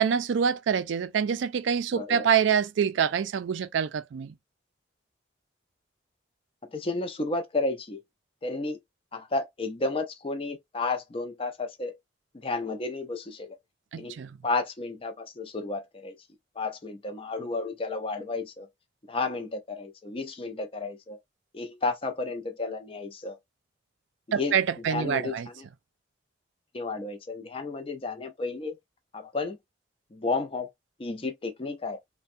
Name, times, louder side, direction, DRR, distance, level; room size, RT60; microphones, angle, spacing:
voice 1, 0.0-4.3 13.9-14.3 24.3-25.5, right 7 dB, 75° right, 0.4 m, -26 dB
voice 2, 1.9-2.3 6.6-8.0 8.4-8.8 9.1-12.0 12.4-13.6 14.0-16.2 16.6-18.7 19.1-21.2 21.5-23.4 24.3-25.6 26.7-28.8 29.1-29.6 30.1-30.7 31.0-32.0, left 3 dB, 30° left, 0.4 m, -32 dB
3.3 x 2.1 x 2.5 m
head